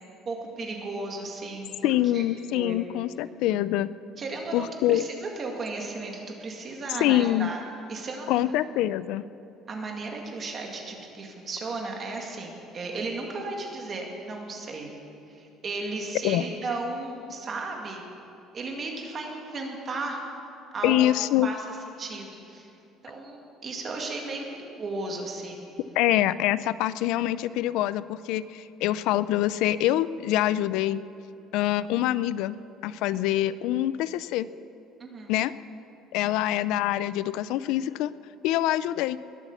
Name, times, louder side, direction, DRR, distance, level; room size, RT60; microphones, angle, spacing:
voice 1, 0.3-1.7 2.1-2.2 2.5-2.7 4.2-7.6 7.9-8.5 9.7-14.9 15.3-18.0 18.5-20.2 20.7-21.1 21.4-21.6 21.9-22.7 23.0-24.5 24.8-25.7 33.1-33.2 35.0-35.4 36.2-36.4, right 3 dB, 30° right, 1 dB, 2.0 m, -35 dB
voice 2, 1.8-3.9 4.5-5.0 7.0-7.5 8.3-9.2 16.2-16.5 20.8-21.5 26.0-31.0 31.5-32.6 32.8-34.5 35.3-35.5 36.1-38.1 38.4-39.2, left 14 dB, 70° left, 16 dB, 0.3 m, -25 dB
20.5 x 8.3 x 7.1 m, 2.8 s
cardioid pair, 170°, 0 cm